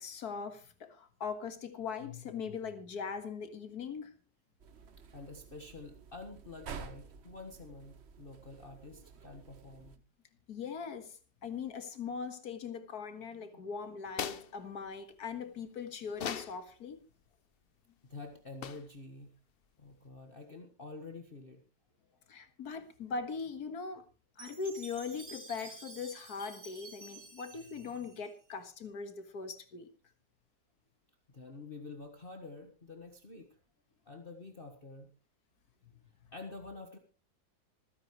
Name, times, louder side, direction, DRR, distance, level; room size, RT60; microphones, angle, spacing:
voice 1, 0.0-4.1 10.5-17.0 22.3-24.0 24.4-29.9, left 5 dB, 55° left, 2.1 m, -40 dB
sound 1, 4.6-10.0, right 6 dB, 45° right, 0.9 m, -50 dB
voice 2, 5.1-10.0 13.5-13.6 18.0-19.4 19.8-21.6 22.1-22.5 31.3-33.6 34.0-35.1 36.3-37.0, left 3 dB, 30° left, 1.6 m, -48 dB
sound 2, 14.1-14.5 16.1-16.6 18.6-19.0, left 8 dB, 75° left, 0.5 m, -38 dB
Chime, 24.4-28.7, right 3 dB, 85° right, 4.5 m, -51 dB
26.0 x 9.7 x 3.1 m
omnidirectional pair, 2.0 m